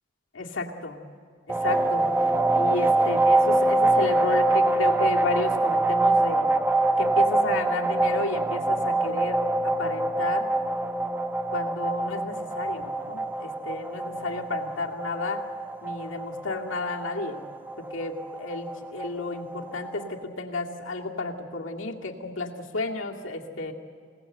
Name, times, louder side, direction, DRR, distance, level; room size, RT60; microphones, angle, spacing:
voice 1, 0.3-1.0 1.5-2.1 2.6-6.5 7.0-10.5 11.5-15.4 15.8-17.4 17.8-23.7, left 3 dB, 85° left, 0 dB, 2.3 m, -32 dB
sound 1, 1.5-20.1, right 2 dB, 10° right, 0.5 m, -25 dB
26.5 x 18.0 x 7.9 m, 2.2 s
head